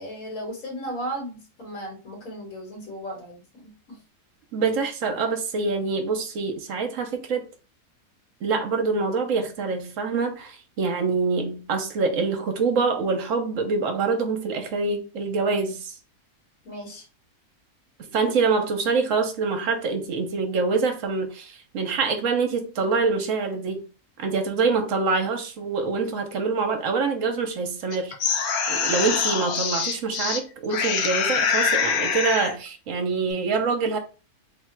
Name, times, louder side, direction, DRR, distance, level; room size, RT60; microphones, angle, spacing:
voice 1, 0.0-4.0 16.6-17.0, right 1 dB, 60° left, 2.0 m, -36 dB
voice 2, 4.5-7.5 8.4-15.9 18.0-23.8 24.2-34.0, right 4 dB, 60° right, 1.0 m, -25 dB
sound 1, 27.9-30.4 30.7-32.6, left 6 dB, 75° left, 1.1 m, -24 dB
3.4 x 2.3 x 4.3 m
omnidirectional pair, 1.6 m